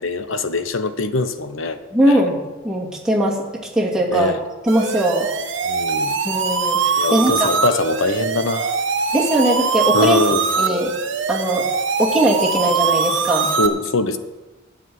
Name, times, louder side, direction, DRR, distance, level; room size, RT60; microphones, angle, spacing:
voice 1, 0.0-1.8 2.1-2.2 4.1-4.4 5.7-6.2 7.0-8.8 9.9-10.4 13.6-14.2, left 2 dB, 80° left, 9 dB, 1.0 m, -22 dB
voice 2, 1.9-2.4 2.6-4.3 4.7-5.3 6.2-7.5 9.1-10.2 10.6-10.9 11.3-11.7 12.0-13.5, right 1 dB, 5° right, -4 dB, 2.4 m, -19 dB
sound 1, 4.7-13.7, right 5 dB, 70° right, 1.2 m, -22 dB
12.5 x 6.4 x 9.4 m, 1.2 s
head